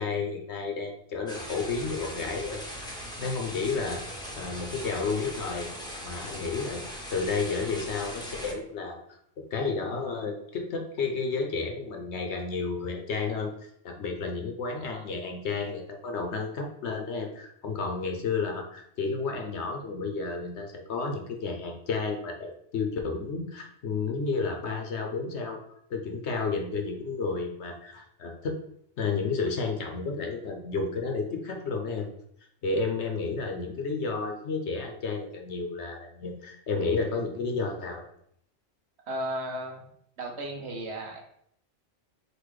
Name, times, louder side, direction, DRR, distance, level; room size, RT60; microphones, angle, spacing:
voice 1, 0.0-2.6 3.2-4.0 4.3-5.7 6.0-6.8 7.1-9.0 9.5-13.5 13.8-25.6 25.9-28.6 29.0-32.1 32.6-38.1, left 4 dB, 60° left, 3 dB, 1.0 m, -31 dB
sound 1, 1.3-8.5, equal, 5° left, 0.7 m, -39 dB
voice 2, 39.1-39.9 40.2-41.2, right 1 dB, 60° right, 1 dB, 1.0 m, -34 dB
4.0 x 2.5 x 4.7 m, 0.68 s
omnidirectional pair, 1.3 m